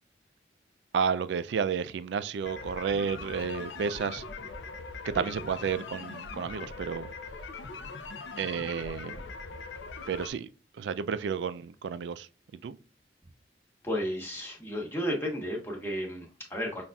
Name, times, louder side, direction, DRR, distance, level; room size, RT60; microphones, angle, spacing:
voice 1, 0.9-4.2 5.0-7.1 8.4-9.2 10.1-10.5 10.8-12.3 12.6-12.8, right 6 dB, 75° right, 0.3 m, -31 dB
sound 1, 2.4-10.3, left 4 dB, 80° left, 0.5 m, -41 dB
voice 2, 13.8-16.8, equal, 15° left, 1.0 m, -33 dB
5.5 x 2.5 x 2.2 m
head